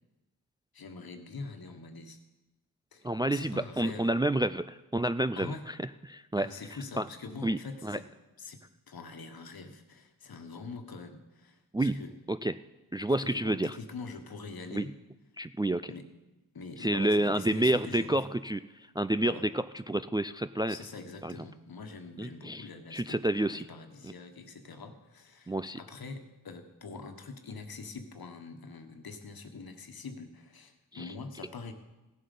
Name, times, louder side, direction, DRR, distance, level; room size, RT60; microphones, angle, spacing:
voice 1, 0.7-2.2 2.9-4.1 5.3-5.7 6.4-8.0 8.4-12.1 13.2-14.9 15.9-16.1 16.5-18.2 19.2-19.5 20.7-31.7, left 4 dB, 65° left, 6 dB, 1.4 m, -44 dB
voice 2, 3.0-5.7 6.1-6.5 7.0-7.1 7.4-8.0 11.7-12.0 12.3-12.5 12.9-13.8 14.7-14.8 15.4-15.9 16.8-20.8 21.2-21.4 22.2-23.7 24.0-24.1 25.5-25.8 30.9-31.1, right 1 dB, 10° right, 12 dB, 0.3 m, -29 dB
16.0 x 7.5 x 5.4 m, 1.1 s
cardioid pair, 45°, 38 cm